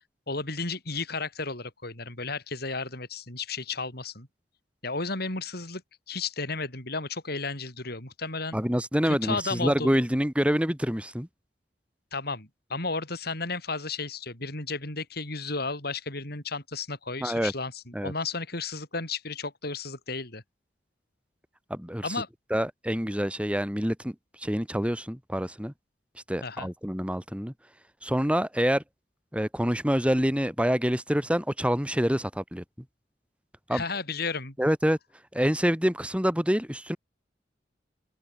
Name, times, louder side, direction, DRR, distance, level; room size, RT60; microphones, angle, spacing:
voice 1, 0.3-4.3 4.8-5.8 6.1-8.6 9.0-10.0 12.1-20.4 22.0-22.3 26.4-26.7 33.7-34.6, left 3 dB, 60° left, 7.8 m, -33 dB
voice 2, 8.5-11.3 17.2-17.5 17.9-18.1 21.7-22.2 22.5-24.1 24.4-25.7 26.3-27.5 28.0-28.8 29.3-32.6 33.7-33.8 34.6-35.0 35.3-37.0, equal, 5° right, 4.6 m, -26 dB
open air
head